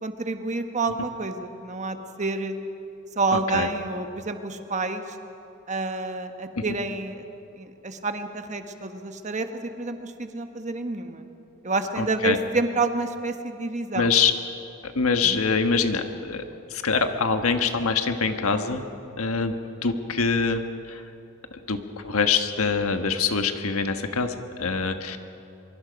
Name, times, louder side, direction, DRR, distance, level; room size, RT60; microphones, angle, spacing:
voice 1, 0.0-2.5 3.1-5.0 5.7-7.2 7.6-9.5 9.8-11.2 11.6-14.1 15.2-15.4, right 3 dB, 35° right, 7 dB, 1.2 m, -28 dB
voice 2, 3.3-3.7 6.6-6.7 12.0-12.4 13.9-14.3 14.8-16.4 16.7-18.8 19.2-19.5 19.8-20.6 20.9-21.0 21.5-25.2, left 5 dB, 85° left, 7 dB, 1.4 m, -24 dB
24.5 x 23.0 x 5.2 m, 2.8 s
head